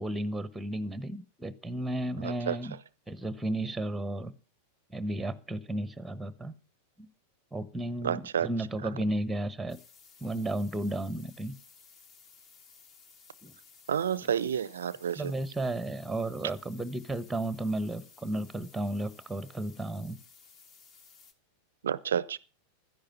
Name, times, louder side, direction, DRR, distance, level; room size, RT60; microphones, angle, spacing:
voice 1, 0.0-2.8 3.1-4.3 4.9-6.5 7.0-7.1 7.5-9.8 10.2-11.5 13.4-13.5 15.2-20.2, right 1 dB, 5° right, 1.0 m, -33 dB
voice 2, 2.2-2.6 8.0-8.5 13.9-15.3 21.8-22.4, right 8 dB, 65° right, 0.5 m, -30 dB
sound 1, 9.7-21.3, left 5 dB, 35° left, 2.0 m, -57 dB
13.0 x 10.5 x 5.8 m
figure-of-eight pair, 90°, 0 cm